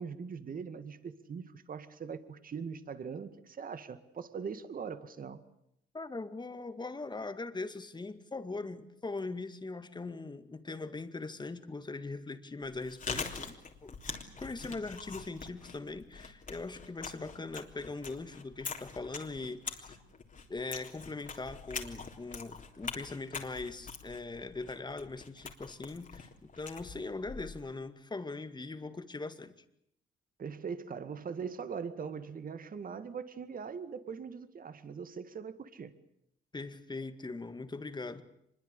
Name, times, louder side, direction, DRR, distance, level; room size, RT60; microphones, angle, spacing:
voice 1, 0.0-5.4 30.4-35.9, right 6 dB, 45° right, 12 dB, 2.0 m, -41 dB
voice 2, 5.9-20.0 20.5-26.3 26.6-29.5 36.5-38.2, left 3 dB, 20° left, 10 dB, 2.1 m, -41 dB
Chewing mastication, 12.7-27.7, left 5 dB, 40° left, 3.5 m, -44 dB
24.5 x 22.0 x 8.5 m, 0.75 s
cardioid pair, 90°, 20 cm